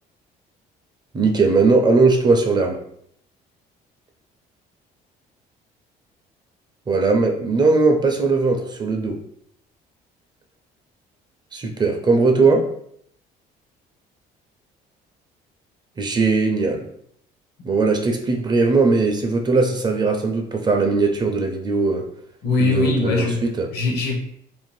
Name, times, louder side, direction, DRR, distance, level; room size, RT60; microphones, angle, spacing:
voice 1, 1.1-2.8 6.9-9.2 11.5-12.7 16.0-16.8 17.6-22.0 22.6-23.7, right 3 dB, 25° right, 3 dB, 0.4 m, -19 dB
voice 2, 22.4-23.4 23.7-24.2, left 3 dB, 70° left, 2 dB, 0.7 m, -21 dB
2.6 x 2.0 x 3.1 m, 0.69 s
cardioid pair, 110°, 17 cm